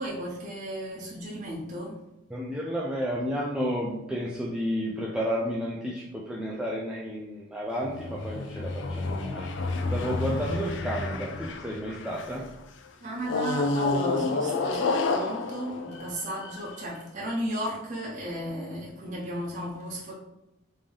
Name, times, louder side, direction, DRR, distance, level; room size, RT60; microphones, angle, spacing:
voice 1, 0.0-2.0 13.0-20.1, equal, 40° right, -4 dB, 0.7 m, -34 dB
voice 2, 2.3-12.5, equal, 5° right, -4 dB, 0.3 m, -32 dB
sound 1, 7.8-12.4 13.2-16.8, left 3 dB, 70° left, 0.4 m, -30 dB
3.4 x 2.7 x 3.5 m, 0.91 s
head